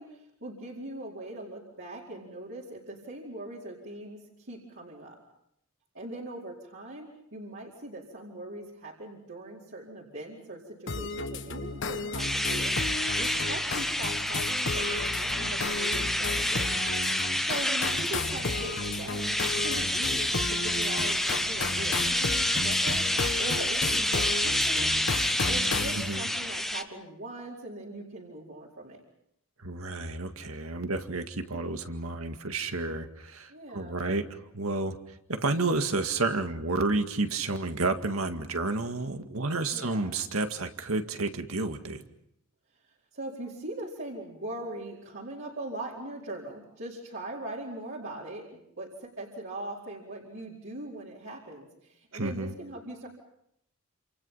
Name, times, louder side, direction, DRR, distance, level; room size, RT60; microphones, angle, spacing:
voice 1, 0.0-5.2 5.9-16.8 17.1-23.1 23.3-24.9 25.5-29.0 33.5-34.1 39.7-40.1 43.1-53.1, right 1 dB, 60° right, -5 dB, 4.5 m, -41 dB
sound 1, 10.9-26.0, left 3 dB, 60° left, 1.3 m, -34 dB
sound 2, 12.2-26.8, left 1 dB, ahead, 1.2 m, -29 dB
voice 2, 25.9-26.3 29.6-35.0 35.3-42.0 52.1-52.5, right 3 dB, 85° right, 7 dB, 2.0 m, -31 dB
28.5 x 28.0 x 5.7 m, 0.75 s
head